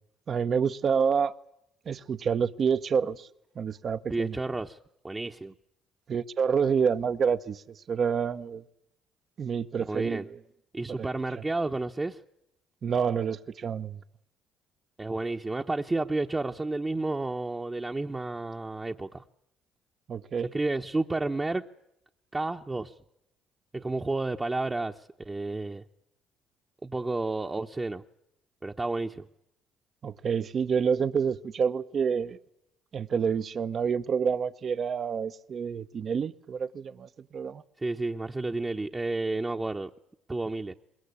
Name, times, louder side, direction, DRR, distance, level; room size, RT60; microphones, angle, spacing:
voice 1, 0.3-1.4 1.9-3.3 3.6-4.4 6.1-8.6 9.4-10.4 10.9-11.1 11.4-11.5 12.8-14.0 20.1-20.5 30.0-32.4 32.9-37.6, right 6 dB, 50° right, 0.8 m, -28 dB
voice 2, 4.1-4.8 5.0-5.5 9.9-10.3 10.7-12.2 15.0-19.2 20.5-21.6 22.3-22.9 23.7-25.8 26.8-28.0 28.6-29.3 37.8-39.9 40.3-40.7, right 2 dB, 20° right, 1.0 m, -31 dB
24.0 x 21.0 x 8.5 m
supercardioid pair, 70°, 0 cm